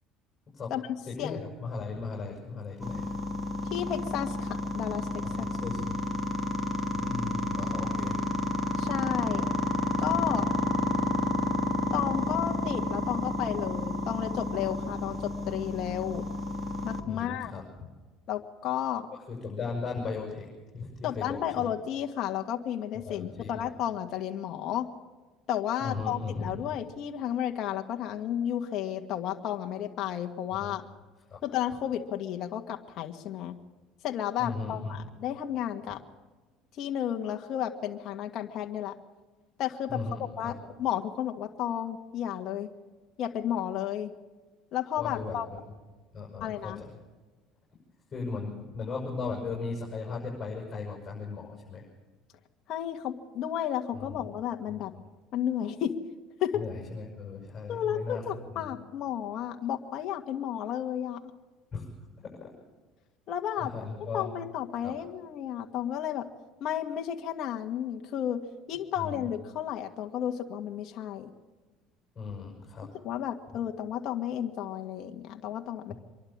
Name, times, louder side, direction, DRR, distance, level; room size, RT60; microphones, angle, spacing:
voice 1, 1.1-3.1 5.3-6.0 6.9-8.2 10.1-10.3 15.1-15.2 17.0-17.6 19.3-20.4 20.7-21.7 23.0-23.7 25.8-26.6 30.5-30.7 31.3-31.4 34.4-34.9 39.9-40.5 45.0-45.6 46.1-46.9 48.1-51.8 53.9-54.2 56.5-58.2 58.5-58.7 61.7-61.8 63.6-64.3 64.8-64.9 69.0-69.2 72.1-72.9 75.9-76.0, left 4 dB, 30° left, -2 dB, 6.9 m, -37 dB
sound 1, 2.8-17.0, left 1 dB, 10° left, 2.4 m, -30 dB
voice 2, 3.7-5.5 8.8-9.4 10.0-10.4 11.9-16.3 16.8-17.5 18.3-19.1 21.0-24.9 25.5-30.8 31.4-33.6 34.0-36.0 36.8-38.9 39.6-42.7 43.2-44.1 44.7-45.5 46.4-46.8 52.7-54.9 55.3-56.0 56.4-56.6 57.7-61.3 63.3-63.7 64.1-66.2 66.6-68.4 68.7-71.3 73.0-75.9, left 10 dB, 55° left, 3 dB, 1.8 m, -32 dB
25.5 x 11.5 x 8.7 m, 1.3 s
cardioid pair, 115°, 0 cm